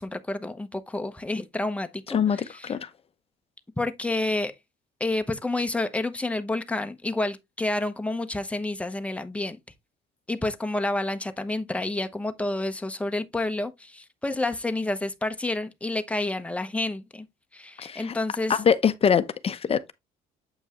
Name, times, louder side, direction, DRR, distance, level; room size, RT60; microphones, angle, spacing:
voice 1, 0.0-2.7 3.8-4.5 5.0-9.6 10.3-17.3 17.5-18.6, left 2 dB, 5° left, 0.9 m, -29 dB
voice 2, 2.1-2.9 17.8-18.1 18.5-19.9, left 7 dB, 35° left, 0.8 m, -24 dB
8.1 x 5.3 x 3.0 m
cardioid pair, 110°, 17 cm